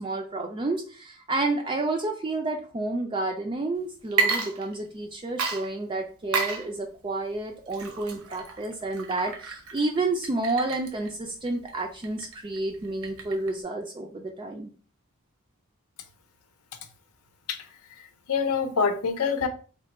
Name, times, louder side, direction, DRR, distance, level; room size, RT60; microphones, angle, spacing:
voice 1, 0.0-14.7, right 2 dB, 20° right, 2 dB, 0.3 m, -30 dB
Water / Liquid, 4.0-5.1 5.4-13.6, right 4 dB, 70° right, 0.7 m, -32 dB
voice 2, 18.0-19.5, left 5 dB, 80° left, 7 dB, 0.6 m, -26 dB
3.2 x 2.2 x 4.0 m, 0.39 s
head